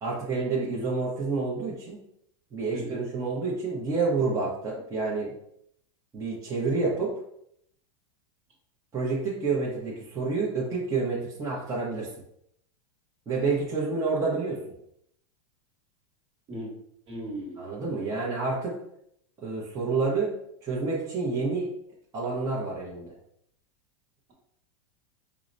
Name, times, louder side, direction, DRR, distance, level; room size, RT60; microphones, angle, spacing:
voice 1, 0.0-2.0 2.5-5.3 6.1-7.1 8.9-12.1 13.3-14.6 17.6-18.7 19.4-20.3 20.6-21.7 22.1-23.1, right 4 dB, 20° right, -5 dB, 0.8 m, -28 dB
voice 2, 17.1-17.6, right 1 dB, 35° right, -3 dB, 1.3 m, -37 dB
4.6 x 2.1 x 2.6 m, 0.72 s
supercardioid pair, 130°, 17 cm